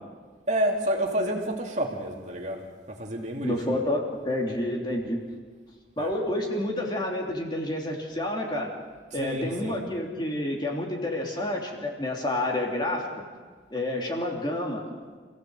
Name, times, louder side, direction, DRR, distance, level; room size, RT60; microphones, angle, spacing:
voice 1, 0.5-3.6 6.0-6.1 9.2-9.8, right 1 dB, 40° right, 1 dB, 2.6 m, -29 dB
voice 2, 3.4-5.2 6.0-8.7 9.1-13.1 13.7-14.8, left 1 dB, 25° left, -1 dB, 3.2 m, -29 dB
27.5 x 16.5 x 7.9 m, 1.5 s
head